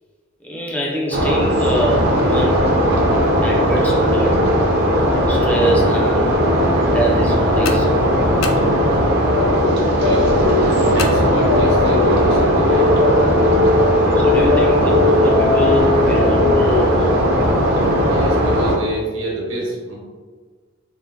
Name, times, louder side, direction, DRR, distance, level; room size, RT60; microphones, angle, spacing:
voice 1, 0.4-2.8 3.4-4.5 5.3-6.4 6.7-8.0 14.2-17.2, equal, 10° left, -2 dB, 0.4 m, -24 dB
sound 1, 1.1-18.8, equal, 55° right, 0.5 m, -17 dB
sound 2, 7.6-9.3 11.0-11.9, left 4 dB, 90° left, 0.3 m, -29 dB
sound 3, 9.3-16.7, left 3 dB, 75° left, 0.7 m, -20 dB
voice 2, 9.8-10.3 10.8-13.0 18.1-19.9, right 1 dB, 80° right, -4 dB, 1.0 m, -26 dB
3.5 x 2.0 x 2.6 m, 1.5 s
head